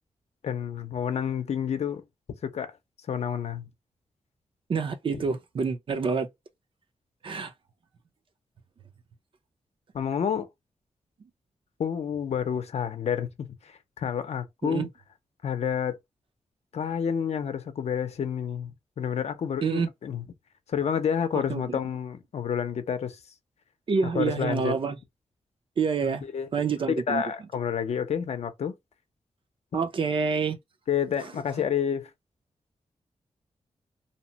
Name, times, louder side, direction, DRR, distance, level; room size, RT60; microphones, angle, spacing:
voice 1, 0.4-2.0 2.5-2.8 3.1-3.7 5.1-5.2 9.9-10.5 11.8-14.9 15.4-16.0 16.7-20.2 20.7-23.2 24.1-24.7 26.0-28.8 30.9-32.1, left 8 dB, 65° left, 0.6 m, -29 dB
voice 2, 4.7-6.3 7.2-7.5 14.6-14.9 19.6-19.9 21.5-21.8 23.9-25.0 25.8-26.2 26.5-27.2 29.7-30.6, right 5 dB, 45° right, 0.6 m, -27 dB
2.8 x 2.1 x 2.8 m
wide cardioid pair, 155°, 12 cm